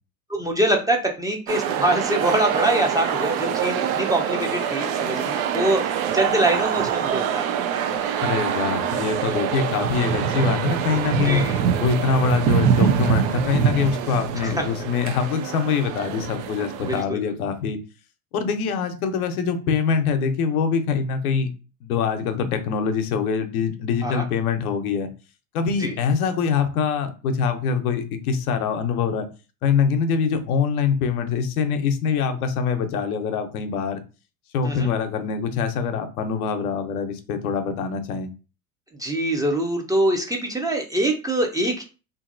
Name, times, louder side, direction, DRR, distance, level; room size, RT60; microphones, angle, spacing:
voice 1, 0.3-7.4 11.3-11.6 14.4-14.6 16.8-17.3 24.0-24.2 25.8-25.9 34.6-34.9 39.0-41.8, right 1 dB, 10° right, 2 dB, 0.5 m, -24 dB
sound 1, 1.5-17.0, right 8 dB, 75° right, 0.6 m, -24 dB
voice 2, 8.2-11.4 11.8-17.8 18.3-21.5 21.8-25.1 25.5-29.3 29.6-34.0 34.5-38.3, left 6 dB, 80° left, 8 dB, 0.6 m, -24 dB
2.8 x 2.6 x 2.5 m, 0.33 s
hypercardioid pair, 80°, 43 cm